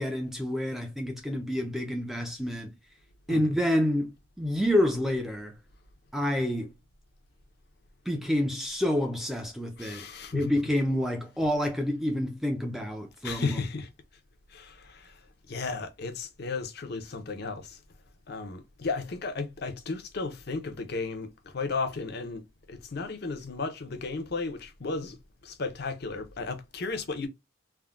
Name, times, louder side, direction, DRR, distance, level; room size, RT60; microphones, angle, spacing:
voice 1, 0.0-2.8 3.3-5.6 6.1-6.7 8.1-10.1 10.3-13.6, left 1 dB, ahead, 0.4 m, -28 dB
voice 2, 9.8-10.6 13.2-13.8 14.5-15.2 15.5-17.8 18.3-25.2 25.4-27.3, left 4 dB, 50° left, 0.6 m, -34 dB
3.4 x 2.1 x 2.3 m
head